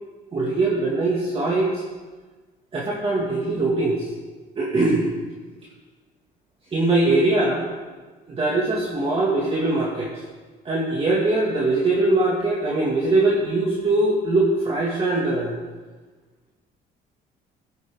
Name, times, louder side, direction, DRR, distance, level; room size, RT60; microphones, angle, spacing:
voice 1, 0.3-1.8 2.7-4.1 4.6-5.1 6.7-7.7 8.3-10.1 10.7-15.5, right 2 dB, 35° right, -4 dB, 2.1 m, -21 dB
15.5 x 9.3 x 3.7 m, 1.3 s
cardioid pair, 110°, 17 cm